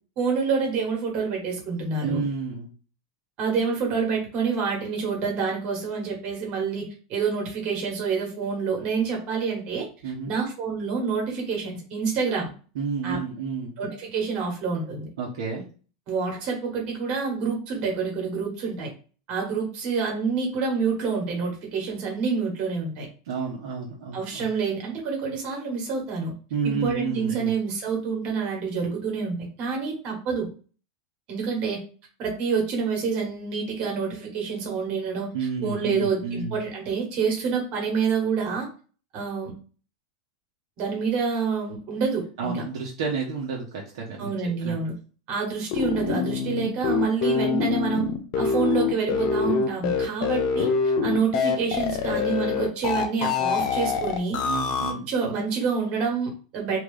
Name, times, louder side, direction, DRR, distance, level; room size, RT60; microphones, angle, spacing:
voice 1, 0.2-2.2 3.4-9.9 10.3-12.5 13.0-13.2 13.8-15.1 16.1-18.9 19.3-23.1 24.1-26.3 26.6-30.5 31.3-31.8 32.2-35.3 35.6-38.7 39.1-39.5 40.8-42.6 44.2-44.9 45.3-48.1 48.4-54.4 55.1-56.8, right 5 dB, 45° right, 0 dB, 1.4 m, -27 dB
voice 2, 2.0-2.7 10.0-10.3 12.7-13.7 15.2-15.7 23.2-24.5 26.5-27.5 35.3-36.6 42.4-44.3 44.6-44.8 54.4-55.1, right 5 dB, 75° right, -2 dB, 0.8 m, -30 dB
sound 1, 45.7-54.9, left 6 dB, 55° left, 0.6 m, -25 dB
2.9 x 2.3 x 3.2 m, 0.37 s
supercardioid pair, 125°, 3 cm